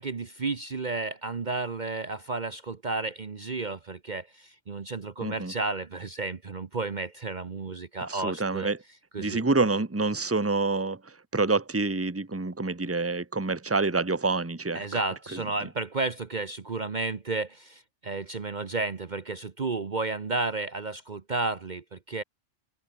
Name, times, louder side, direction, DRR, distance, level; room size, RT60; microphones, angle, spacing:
voice 1, 0.0-8.7 9.1-9.4 14.7-22.2, right 3 dB, 40° right, 1.1 m, -32 dB
voice 2, 5.2-5.5 8.0-8.8 9.2-14.9 15.3-15.4, right 3 dB, 10° right, 1.2 m, -27 dB
open air
omnidirectional pair, 1.2 m